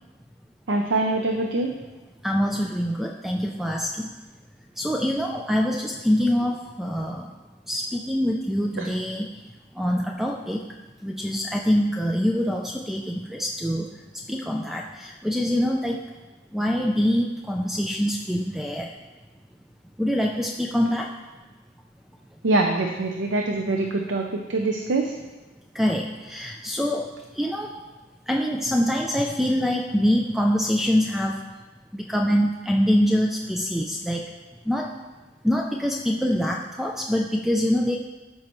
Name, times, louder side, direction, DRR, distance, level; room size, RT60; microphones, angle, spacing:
voice 1, 0.7-1.7 8.8-8.9 22.4-25.1, right 2 dB, 85° right, 2 dB, 0.6 m, -24 dB
voice 2, 2.2-4.1 4.8-7.3 7.7-9.3 9.8-10.6 11.0-13.9 14.3-16.0 16.5-19.0 20.0-21.1 25.7-27.7 28.3-31.4 31.9-34.3 34.7-34.9 35.4-38.0, equal, ahead, 1 dB, 0.4 m, -24 dB
13.5 x 5.5 x 3.1 m, 1.2 s
head